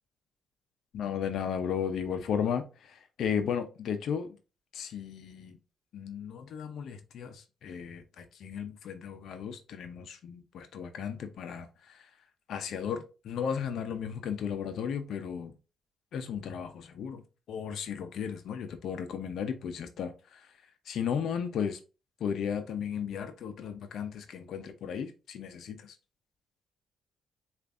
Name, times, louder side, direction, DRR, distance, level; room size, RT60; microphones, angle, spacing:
voice 1, 0.9-4.3 4.7-5.6 5.9-12.1 12.5-15.5 16.1-17.2 17.5-20.5 20.9-21.8 22.2-26.0, left 7 dB, 70° left, 0.6 m, -35 dB
6.8 x 2.5 x 2.5 m
cardioid pair, 90°, 0 cm